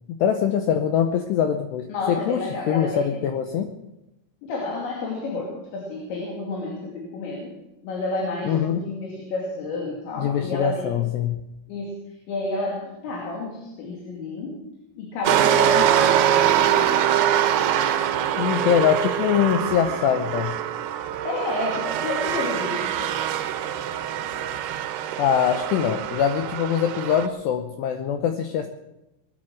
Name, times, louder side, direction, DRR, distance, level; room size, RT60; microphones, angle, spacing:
voice 1, 0.1-3.7 8.4-8.8 10.2-11.4 18.4-20.6 25.2-28.7, left 8 dB, 85° left, 7 dB, 2.4 m, -23 dB
voice 2, 1.9-3.0 4.4-7.5 7.8-11.1 11.7-12.0 12.3-14.7 15.0-17.0 21.2-23.2, left 2 dB, 65° left, -1 dB, 4.7 m, -30 dB
sound 1, 15.2-27.3, right 10 dB, 85° right, 2.3 m, -23 dB
21.0 x 10.5 x 6.3 m, 0.91 s
omnidirectional pair, 6.0 m